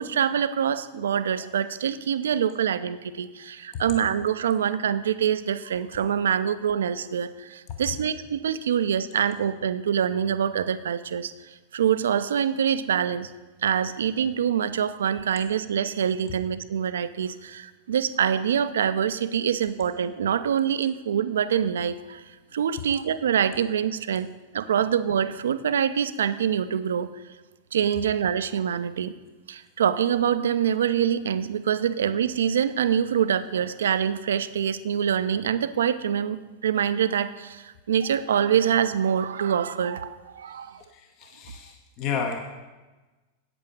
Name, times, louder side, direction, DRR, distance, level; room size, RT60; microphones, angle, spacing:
voice 1, 0.0-11.3 11.7-13.3 13.6-22.2 22.5-24.3 24.5-27.1 27.7-29.2 29.5-40.8, right 8 dB, 65° right, 13 dB, 0.5 m, -25 dB
voice 2, 40.4-42.4, left 6 dB, 40° left, 4 dB, 1.0 m, -33 dB
8.6 x 8.5 x 6.6 m, 1.2 s
figure-of-eight pair, 90°, 0 cm